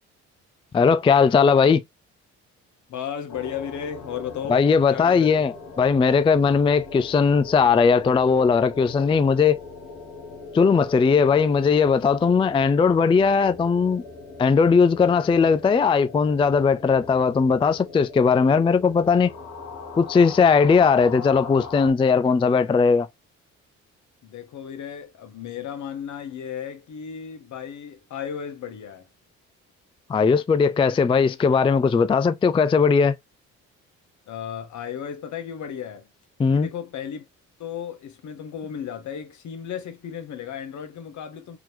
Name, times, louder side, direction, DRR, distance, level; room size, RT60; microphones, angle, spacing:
voice 1, 0.7-1.8 4.5-9.6 10.5-14.0 14.4-19.3 20.0-23.1 30.1-33.1 36.4-36.7, left 5 dB, 20° left, 0.3 m, -19 dB
voice 2, 2.9-5.3 24.2-29.1 34.3-36.1 36.5-37.3 37.6-41.6, left 8 dB, 65° left, 1.2 m, -34 dB
sound 1, 3.3-21.9, left 4 dB, 90° left, 1.5 m, -40 dB
3.7 x 2.9 x 3.0 m
cardioid pair, 75°, 31 cm